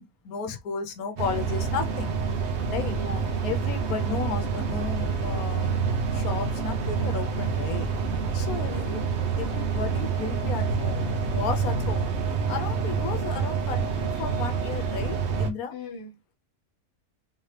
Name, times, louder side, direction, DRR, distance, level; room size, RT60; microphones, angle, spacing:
voice 1, 0.0-2.1 2.7-3.0 3.4-5.7 6.1-7.9 8.3-12.1 12.5-15.8, left 6 dB, 75° left, 1.2 m, -34 dB
sound 1, 1.2-15.5, right 5 dB, 55° right, 1.0 m, -27 dB
voice 2, 2.8-3.2 8.6-9.0 15.7-16.3, left 3 dB, 20° left, 0.7 m, -39 dB
3.5 x 2.8 x 3.2 m
omnidirectional pair, 1.6 m